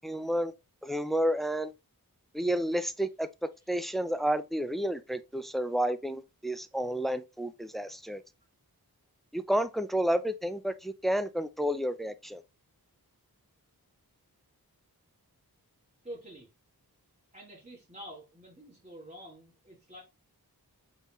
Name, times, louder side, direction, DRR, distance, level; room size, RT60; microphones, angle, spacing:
voice 1, 0.0-0.5 0.8-1.7 2.3-3.3 3.7-8.2 9.3-12.4, right 1 dB, ahead, 0.4 m, -30 dB
voice 2, 16.0-16.5 17.3-20.0, equal, 15° right, 2.1 m, -47 dB
4.0 x 3.8 x 3.0 m
wide cardioid pair, 40°, 39 cm